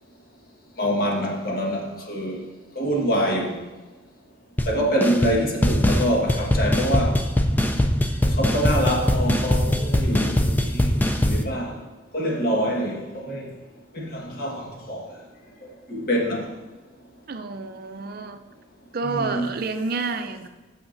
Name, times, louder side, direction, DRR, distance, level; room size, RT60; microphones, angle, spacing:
voice 1, 0.8-2.4 2.7-3.6 4.7-7.2 8.2-11.8 12.1-13.5 13.9-15.1 15.9-16.5 19.1-19.5, equal, 50° left, 1.4 m, -25 dB
sound 1, 4.6-4.7 5.0-5.4 5.6-11.4, left 1 dB, 10° left, 0.4 m, -21 dB
voice 2, 5.1-5.5 17.3-18.4 18.9-20.5, right 4 dB, 50° right, 0.5 m, -29 dB
13.5 x 5.7 x 2.6 m
head